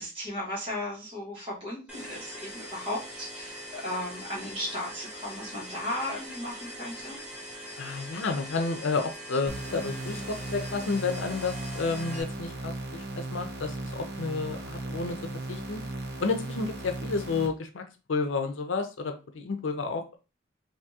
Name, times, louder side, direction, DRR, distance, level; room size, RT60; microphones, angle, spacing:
voice 1, 0.0-7.1, left 1 dB, 30° right, -5 dB, 1.5 m, -36 dB
sound 1, 1.9-12.2, equal, 5° right, 0.6 m, -42 dB
voice 2, 7.8-15.2 15.5-15.8 16.2-17.8 18.1-20.2, left 4 dB, 90° left, 7 dB, 0.6 m, -31 dB
sound 2, 9.5-17.5, right 2 dB, 55° right, 0.6 m, -37 dB
3.5 x 2.7 x 2.8 m, 0.31 s
head